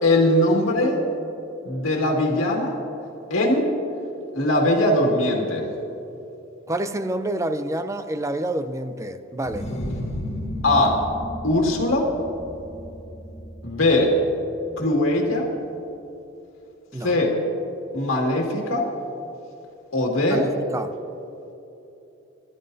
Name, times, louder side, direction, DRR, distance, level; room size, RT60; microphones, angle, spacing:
voice 1, 0.0-1.0 1.6-2.8 3.3-3.7 4.3-5.6 10.6-11.0 11.4-12.1 13.6-14.1 14.8-15.5 17.0-17.4 17.9-18.9 19.9-20.5, left 1 dB, 75° left, -1 dB, 2.1 m, -20 dB
voice 2, 6.7-9.7 16.9-17.2 20.3-21.0, right 1 dB, 15° right, 10 dB, 0.5 m, -28 dB
sound 1, 9.4-15.0, equal, 35° left, 1.2 m, -34 dB
21.5 x 13.0 x 2.7 m, 2.9 s
head